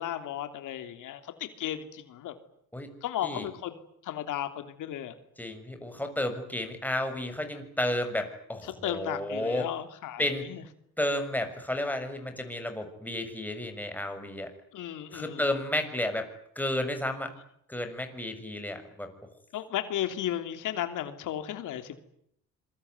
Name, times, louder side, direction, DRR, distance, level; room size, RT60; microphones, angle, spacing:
voice 1, 0.0-2.3 3.0-3.7 4.0-5.1 8.8-10.6 14.7-15.5 19.5-21.9, left 11 dB, 85° left, 8 dB, 3.1 m, -34 dB
voice 2, 5.4-9.7 10.2-10.4 11.0-14.5 15.1-16.3 16.5-17.3 17.7-19.1, left 1 dB, 5° left, 6 dB, 6.7 m, -32 dB
26.5 x 23.5 x 9.6 m, 0.71 s
cardioid pair, 95°, 30 cm